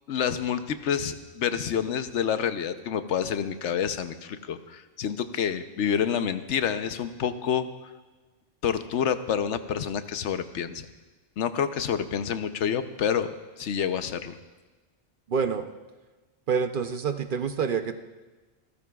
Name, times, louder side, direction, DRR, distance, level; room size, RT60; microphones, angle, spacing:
voice 1, 0.1-7.7 8.6-10.9 11.4-13.3 13.6-14.4, left 8 dB, 85° left, 10 dB, 1.0 m, -28 dB
voice 2, 15.3-15.7 16.5-18.0, right 6 dB, 55° right, 8 dB, 0.7 m, -27 dB
27.5 x 14.0 x 2.3 m, 1.2 s
omnidirectional pair, 1.2 m